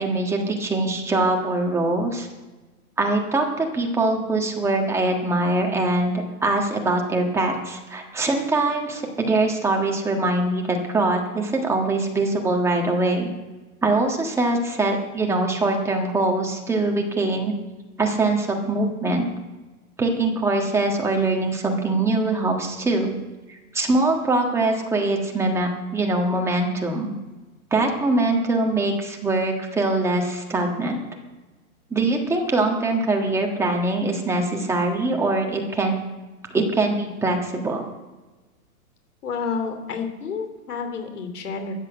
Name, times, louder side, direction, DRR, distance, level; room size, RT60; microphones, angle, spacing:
voice 1, 0.0-2.3 3.0-6.1 6.4-13.3 13.8-17.5 18.0-19.3 20.0-23.1 23.5-27.1 27.7-31.0 31.9-36.0 36.5-37.8, right 2 dB, 5° right, 1 dB, 1.5 m, -23 dB
voice 2, 39.2-41.7, left 5 dB, 85° left, 6 dB, 3.0 m, -30 dB
13.5 x 8.4 x 8.0 m, 1.2 s
hypercardioid pair, 150°, 45 cm